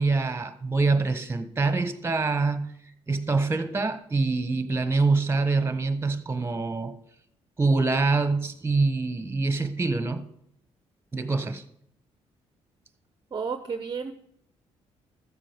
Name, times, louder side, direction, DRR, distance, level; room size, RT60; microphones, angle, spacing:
voice 1, 0.0-7.0 7.6-10.3 11.1-11.6, right 3 dB, 20° right, 1.3 m, -25 dB
voice 2, 13.3-14.1, right 5 dB, 35° right, 0.8 m, -31 dB
13.5 x 7.5 x 5.3 m
cardioid pair, 75°, 12 cm